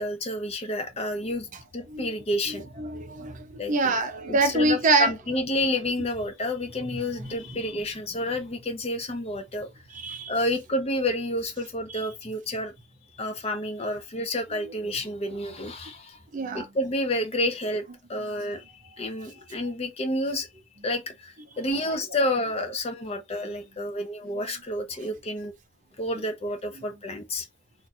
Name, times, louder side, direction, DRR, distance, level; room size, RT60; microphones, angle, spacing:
voice 1, 0.0-1.5 1.7-2.7 3.6-4.0 4.3-9.7 10.3-12.7 13.1-16.2 16.5-17.8 18.1-18.6 19.0-20.5 20.8-25.5 26.0-27.5, left 1 dB, 30° left, 0.5 m, -29 dB
voice 2, 2.8-5.1 6.9-7.3 9.9-10.3 16.3-16.7 23.4-23.5, right 3 dB, 40° right, 0.5 m, -25 dB
2.5 x 2.3 x 4.0 m
head